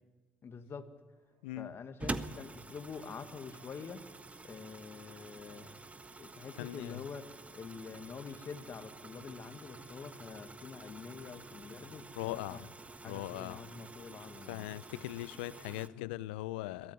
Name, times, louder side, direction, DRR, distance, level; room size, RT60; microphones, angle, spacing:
voice 1, 0.4-0.9 1.6-4.0 4.4-5.7 6.2-12.6 13.0-14.7, left 5 dB, 50° left, 9 dB, 2.0 m, -46 dB
sound 1, 1.1-15.7, right 3 dB, 75° right, 3.0 m, -69 dB
voice 2, 1.4-1.7 6.6-7.0 12.2-12.7 13.0-13.6 14.5-16.9, left 17 dB, 80° left, 19 dB, 0.6 m, -40 dB
sound 2, 2.0-15.9, right 2 dB, 25° right, 1.5 m, -47 dB
22.5 x 16.0 x 9.5 m, 1.3 s
hypercardioid pair, 45°, 5 cm